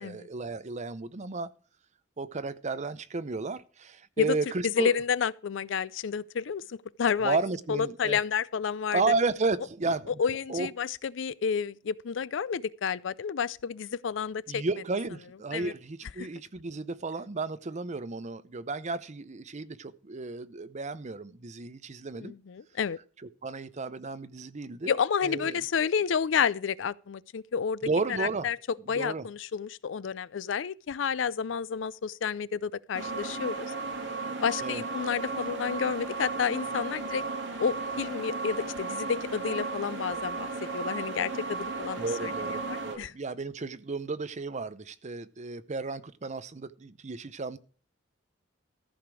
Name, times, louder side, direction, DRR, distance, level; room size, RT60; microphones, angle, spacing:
voice 1, 0.0-1.5 2.2-4.9 7.2-8.2 8.9-10.2 10.5-10.7 14.5-22.3 23.4-24.9 25.2-25.6 27.8-28.5 29.0-29.3 34.6-34.8 42.0-47.6, right 3 dB, 40° right, 0.7 m, -33 dB
voice 2, 4.6-7.4 7.7-9.0 10.1-14.6 15.5-15.7 16.2-16.3 22.2-23.0 24.9-27.8 28.1-28.6 28.9-33.7 34.4-37.2 37.6-40.5 40.7-43.1, left 6 dB, 70° left, 0.4 m, -30 dB
sound 1, 32.9-42.9, right 3 dB, 70° right, 2.5 m, -35 dB
14.0 x 5.1 x 6.1 m
head